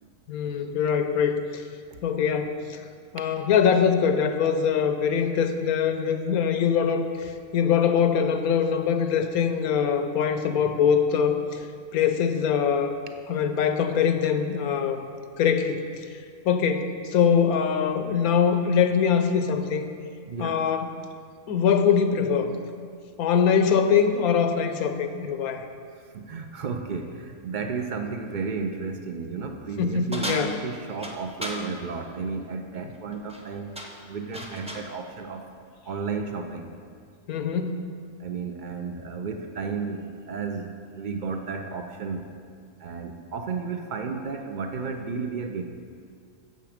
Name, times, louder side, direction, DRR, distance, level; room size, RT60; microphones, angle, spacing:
voice 1, 0.3-1.6 2.0-2.9 3.1-11.6 11.9-13.0 13.3-15.0 15.4-15.9 16.4-19.9 20.4-20.9 21.5-22.5 23.2-25.6 29.8-30.5 37.3-37.8, left 7 dB, 90° left, 8 dB, 1.1 m, -23 dB
voice 2, 20.3-20.6 26.0-33.7 34.1-35.5 35.8-36.7 38.2-42.3 42.8-45.6, right 5 dB, 70° right, 5 dB, 0.4 m, -33 dB
sound 1, 30.1-31.7 33.1-33.4 33.7-34.9, equal, 5° right, 0.5 m, -35 dB
9.2 x 7.1 x 5.0 m, 2.2 s
omnidirectional pair, 1.5 m